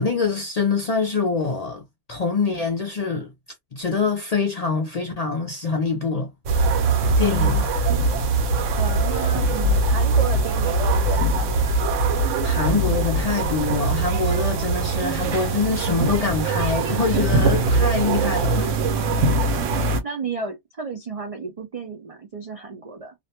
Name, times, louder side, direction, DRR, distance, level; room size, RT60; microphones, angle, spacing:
voice 1, 0.0-1.8 2.1-3.3 3.7-6.3 7.2-7.7 12.4-18.8, left 4 dB, 50° left, 0.4 m, -24 dB
sound 1, 6.5-20.0, right 3 dB, 80° right, 1.0 m, -21 dB
voice 2, 7.3-7.6 8.8-11.8 20.0-23.1, right 4 dB, 65° right, 0.3 m, -33 dB
2.5 x 2.1 x 2.8 m
omnidirectional pair, 1.3 m